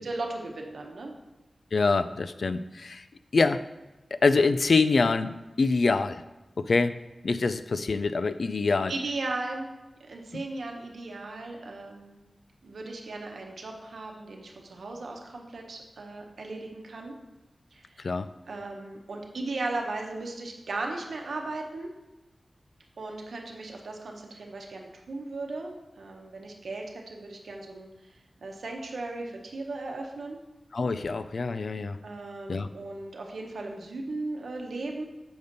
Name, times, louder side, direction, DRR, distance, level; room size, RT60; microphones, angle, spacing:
voice 1, 0.0-1.1 8.9-9.7 10.1-12.2 12.6-17.1 17.7-17.9 18.5-21.9 23.0-27.9 28.4-30.4 32.0-35.1, right 2 dB, 90° right, 1 dB, 0.9 m, -36 dB
voice 2, 1.7-3.0 3.3-3.6 4.2-6.2 6.6-6.9 7.2-8.9 10.3-10.4 18.0-18.3 30.7-32.0 32.5-32.7, left 4 dB, 70° left, 11 dB, 0.3 m, -25 dB
6.9 x 5.2 x 3.9 m, 1.0 s
wide cardioid pair, 70°, 0 cm